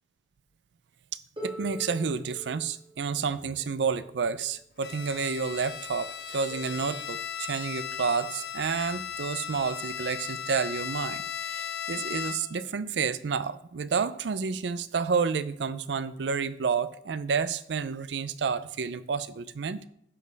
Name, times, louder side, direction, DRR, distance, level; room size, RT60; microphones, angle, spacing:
Harp, 1.4-7.2 8.2-8.3, right 1 dB, 25° right, 2.2 m, -45 dB
voice 1, 1.4-19.9, right 5 dB, 85° right, 14 dB, 0.5 m, -30 dB
Bowed string instrument, 4.8-12.6, left 8 dB, 70° left, 0.5 m, -37 dB
10.0 x 6.6 x 3.4 m, 0.73 s
head